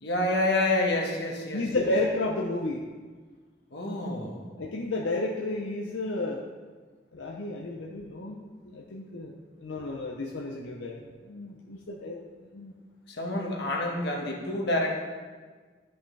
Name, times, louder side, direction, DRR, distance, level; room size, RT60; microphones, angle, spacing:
voice 1, 0.0-1.9 3.7-4.4 7.6-7.7 13.1-14.9, left 2 dB, 60° left, 0 dB, 1.4 m, -28 dB
voice 2, 1.5-2.8 4.6-6.4 7.1-9.3 9.6-12.2 12.5-12.7, left 2 dB, 80° left, -1 dB, 0.7 m, -32 dB
13.0 x 5.6 x 3.3 m, 1.4 s
head